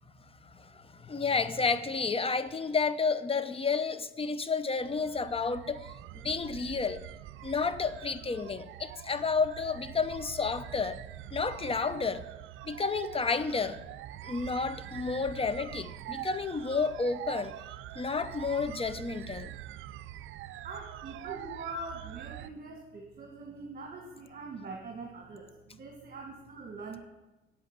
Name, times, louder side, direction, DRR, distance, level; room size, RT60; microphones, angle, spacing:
voice 1, 0.4-5.9 6.2-7.0 7.4-11.0 11.3-12.2 12.6-13.8 14.2-17.5 18.0-19.5, left 4 dB, 30° left, 0.7 m, -31 dB
sound 1, 4.8-22.5, right 13 dB, 80° right, 0.4 m, -44 dB
voice 2, 20.6-27.0, right 3 dB, 50° right, 2.0 m, -43 dB
8.2 x 8.2 x 8.1 m
cardioid pair, 90°, 20 cm